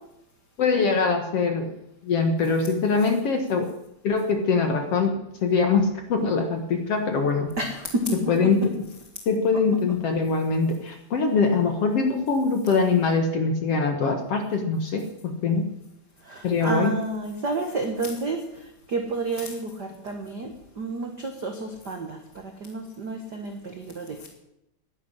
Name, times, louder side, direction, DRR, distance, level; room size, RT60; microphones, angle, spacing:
voice 1, 0.6-1.7 2.0-3.7 4.0-7.5 8.3-8.8 9.3-15.6 16.4-16.9, left 4 dB, 55° left, 5 dB, 1.8 m, -23 dB
voice 2, 7.6-8.5 9.9-10.0 16.2-24.3, right 2 dB, 75° right, 4 dB, 0.9 m, -31 dB
11.5 x 10.5 x 9.8 m, 0.84 s
omnidirectional pair, 4.3 m